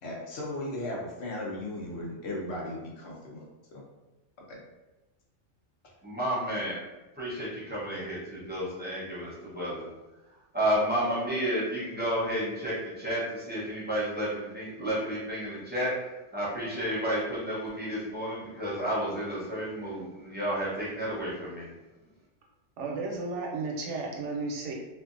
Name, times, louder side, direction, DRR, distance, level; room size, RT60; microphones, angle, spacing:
voice 1, 0.0-3.8 4.5-4.6 5.8-5.9, left 1 dB, 65° left, -2 dB, 0.8 m, -37 dB
voice 2, 6.0-6.8 7.2-9.9 10.5-15.9 16.3-21.7, equal, 10° right, -8 dB, 0.7 m, -31 dB
voice 3, 22.8-24.7, right 3 dB, 75° right, -1 dB, 0.9 m, -33 dB
2.6 x 2.4 x 2.5 m, 1.1 s
omnidirectional pair, 1.2 m